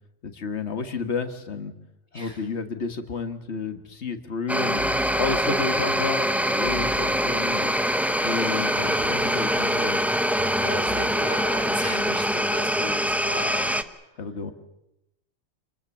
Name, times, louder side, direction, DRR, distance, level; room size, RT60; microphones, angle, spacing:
voice 1, 0.2-1.7 2.1-4.8 5.2-7.7 8.2-10.0 14.2-14.5, left 5 dB, 75° left, 8 dB, 1.9 m, -31 dB
sound 1, 4.5-13.8, equal, ahead, 0.7 m, -24 dB
sound 2, 4.8-7.7 9.0-12.3, right 1 dB, 65° right, 3.8 m, -40 dB
voice 2, 10.6-13.8, equal, 40° left, 2 dB, 2.9 m, -35 dB
27.0 x 20.5 x 7.2 m, 0.88 s
omnidirectional pair, 1.2 m